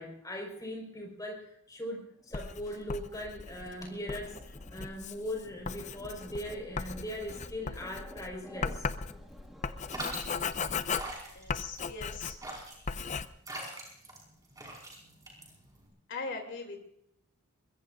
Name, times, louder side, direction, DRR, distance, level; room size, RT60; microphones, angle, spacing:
voice 1, 0.0-8.9, left 1 dB, 15° left, 0 dB, 4.9 m, -40 dB
sound 1, 2.2-10.2, equal, ahead, 2.1 m, -54 dB
Writing, 2.3-12.6 12.9-13.3, left 5 dB, 30° left, 0.5 m, -37 dB
sound 2, 9.9-15.9, right 1 dB, 15° right, 5.2 m, -43 dB
voice 2, 11.3-12.4 16.1-16.8, left 4 dB, 55° left, 2 dB, 3.0 m, -40 dB
23.0 x 21.5 x 2.6 m, 0.74 s
head